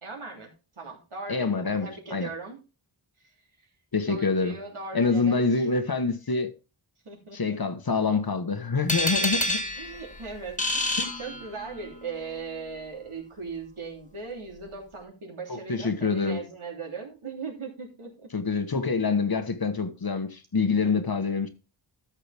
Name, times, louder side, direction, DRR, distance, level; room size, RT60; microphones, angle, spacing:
voice 1, 0.0-0.5 0.8-2.6 3.2-3.3 4.1-5.7 7.0-7.6 8.9-18.3 19.6-19.7 20.8-21.1, right 4 dB, 80° right, 3.2 m, -39 dB
voice 2, 1.3-2.3 3.9-4.5 4.9-6.5 7.3-9.6 11.0-11.1 15.5-16.4 18.3-21.5, left 4 dB, 45° left, 1.2 m, -26 dB
sound 1, 8.9-11.9, left 1 dB, 15° left, 1.5 m, -28 dB
13.0 x 6.6 x 3.4 m
wide cardioid pair, 75°, 49 cm